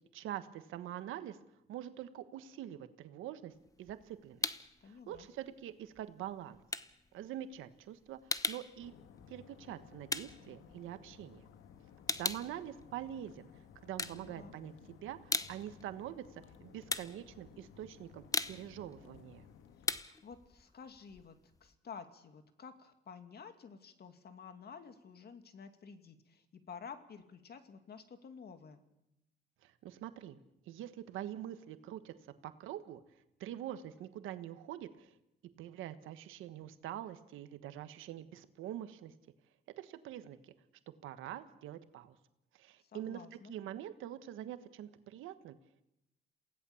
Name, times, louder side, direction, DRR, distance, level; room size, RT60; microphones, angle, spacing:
voice 1, 0.0-1.4 1.7-3.5 3.8-4.4 4.8-6.6 7.1-8.9 9.3-11.4 12.2-13.4 13.7-19.4 29.6-30.4 30.7-32.1 32.4-33.0 33.4-35.1 35.6-39.1 39.8-40.5 41.0-42.2 42.6-43.2 43.5-45.6, right 11 dB, 90° right, 11 dB, 1.4 m, -45 dB
sound 1, 3.5-4.8 5.1-11.4 11.7-13.4 13.8-14.7 15.0-21.7, left 3 dB, 15° left, 1.0 m, -40 dB
voice 2, 4.8-5.3 14.0-14.5 19.8-28.8 42.8-43.5, left 6 dB, 55° left, 8 dB, 2.4 m, -52 dB
sound 2, 8.8-20.0, left 8 dB, 90° left, 1.6 m, -58 dB
28.0 x 17.5 x 7.2 m, 0.87 s
cardioid pair, 90°, 20 cm